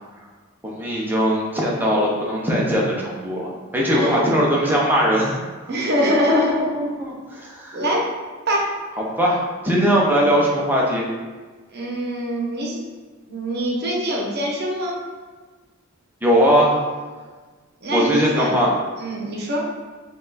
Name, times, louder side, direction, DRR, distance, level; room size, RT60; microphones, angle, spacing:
voice 1, 0.6-5.4 6.1-7.8 9.2-11.1 16.2-16.8 17.9-18.7, equal, 10° right, -4 dB, 0.7 m, -20 dB
voice 2, 3.9-4.3 5.7-6.6 7.7-8.0 8.5-8.7 11.7-12.8 13.3-14.9 17.8-18.5 19.0-19.6, equal, 55° right, -2 dB, 0.9 m, -23 dB
4.5 x 2.4 x 3.9 m, 1.4 s
head